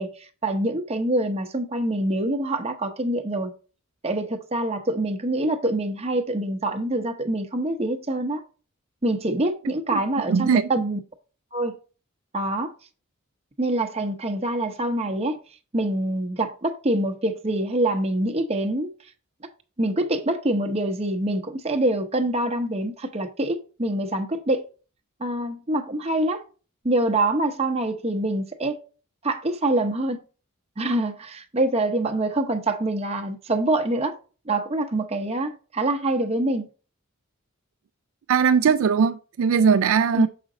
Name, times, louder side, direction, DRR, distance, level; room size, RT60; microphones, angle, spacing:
voice 1, 0.0-3.5 4.0-8.4 9.0-11.0 11.5-11.7 12.3-12.7 13.6-15.4 15.7-18.9 19.8-24.7 25.2-26.4 26.8-28.8 29.2-30.2 30.8-34.2 34.5-36.7 40.1-40.3, right 1 dB, 30° right, 0.8 m, -25 dB
voice 2, 10.3-10.7 38.3-40.3, right 6 dB, 70° right, 0.3 m, -20 dB
7.0 x 5.0 x 3.7 m
head